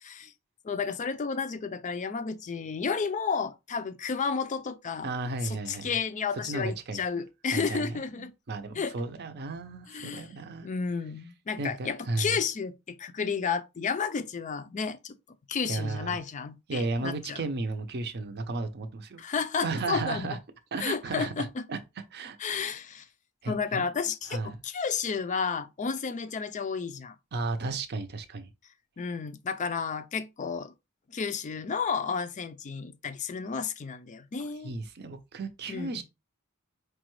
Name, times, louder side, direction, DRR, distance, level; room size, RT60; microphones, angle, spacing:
voice 1, 0.0-0.3 0.6-5.1 5.4-8.3 8.8-8.9 9.9-10.3 10.6-15.2 15.5-17.4 19.2-20.4 20.8-21.6 22.4-23.1 23.4-27.2 29.0-30.7 31.1-34.7 35.7-35.9, left 5 dB, 35° left, 0.4 m, -32 dB
voice 2, 5.0-5.9 6.4-7.2 7.5-10.7 11.6-12.4 15.7-16.2 16.7-19.2 19.6-20.4 20.7-21.8 22.1-22.4 23.4-23.8 24.3-24.6 27.3-28.5 34.6-36.0, right 3 dB, 50° right, 0.6 m, -34 dB
4.8 x 2.2 x 3.0 m
head